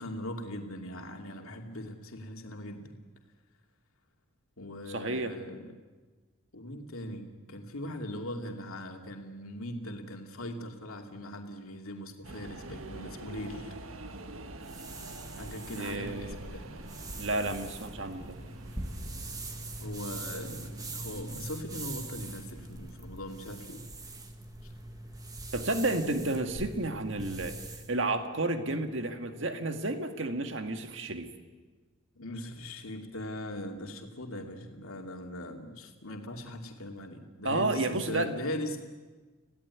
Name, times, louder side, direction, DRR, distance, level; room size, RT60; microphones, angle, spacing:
voice 1, 0.0-3.0 4.6-5.7 6.5-13.7 14.7-14.8 15.4-16.7 19.8-23.9 24.6-24.7 32.2-38.8, left 1 dB, 80° left, 3 dB, 2.6 m, -40 dB
voice 2, 4.9-5.4 15.7-16.4 17.2-18.4 25.5-27.6 27.9-31.3 37.4-38.4, right 2 dB, 60° right, 7 dB, 1.9 m, -31 dB
sound 1, 12.2-23.3, right 2 dB, 75° right, 1.6 m, -47 dB
sound 2, 14.6-27.9, right 2 dB, 15° right, 1.6 m, -42 dB
27.0 x 17.0 x 9.7 m, 1.4 s
head